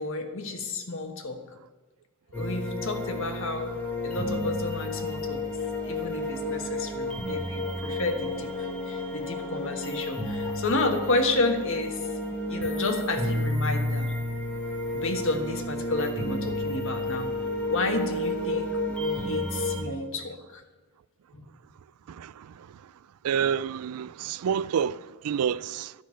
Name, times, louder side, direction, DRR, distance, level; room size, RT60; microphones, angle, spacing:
voice 1, 0.0-1.4 2.3-3.8 4.0-5.4 5.8-14.1 14.9-17.3 17.6-20.6 21.3-21.4, left 2 dB, 65° left, 1.3 m, -31 dB
sound 1, 2.3-19.8, left 1 dB, 5° left, 1.7 m, -31 dB
voice 2, 22.1-22.8 23.2-25.9, right 7 dB, 90° right, 0.4 m, -29 dB
11.5 x 6.2 x 8.2 m
head